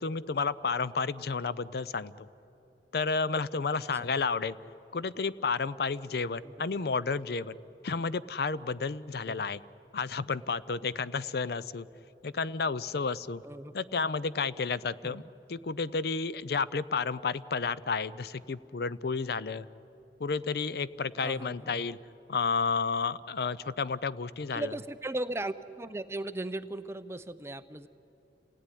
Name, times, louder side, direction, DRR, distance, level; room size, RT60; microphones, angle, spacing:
voice 1, 0.0-2.3 2.9-4.5 4.9-7.6 7.8-9.6 9.9-11.9 12.2-13.4 13.7-15.2 15.5-19.7 20.2-22.0 22.3-24.7, left 4 dB, 60° left, 17 dB, 0.5 m, -31 dB
voice 2, 21.2-21.7 24.5-27.9, right 1 dB, 15° right, 11 dB, 0.6 m, -37 dB
28.5 x 17.5 x 10.0 m, 3.0 s
head